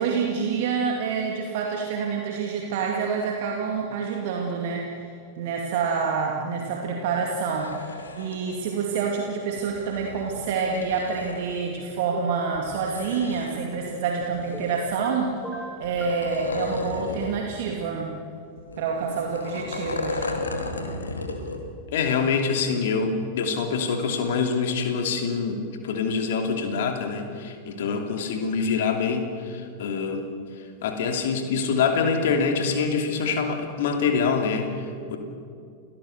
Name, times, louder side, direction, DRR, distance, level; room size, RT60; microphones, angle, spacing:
voice 1, 0.0-5.1 5.4-18.1 18.8-20.3, right 5 dB, 50° right, 0 dB, 2.4 m, -27 dB
sound 1, 7.3-8.4 9.6-11.4 12.5-13.7 14.2-15.1 15.8-17.4 17.7-17.8 18.6-21.6 22.0-22.1, left 2 dB, 75° left, 2.4 m, -34 dB
sound 2, 12.1-12.5 14.5-15.1 15.4-16.2, right 1 dB, 5° left, 5.5 m, -37 dB
voice 2, 21.9-30.2 30.8-35.2, left 5 dB, 55° left, 4 dB, 2.8 m, -25 dB
29.0 x 17.5 x 6.8 m, 2.4 s
figure-of-eight pair, 90°, 0 cm